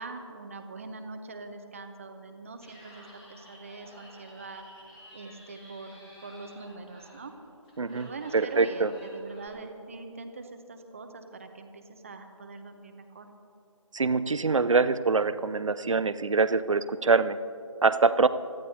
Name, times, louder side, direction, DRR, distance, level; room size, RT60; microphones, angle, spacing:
voice 1, 0.0-4.7 5.1-7.3 7.9-13.3, right 3 dB, 25° right, 6 dB, 0.8 m, -42 dB
Laughter, 2.5-9.5, equal, 15° left, 2.0 m, -53 dB
voice 2, 7.8-8.9 13.9-17.4 17.8-18.3, right 4 dB, 65° right, 14 dB, 0.6 m, -24 dB
25.5 x 14.5 x 2.8 m, 2.7 s
figure-of-eight pair, 160°, 17 cm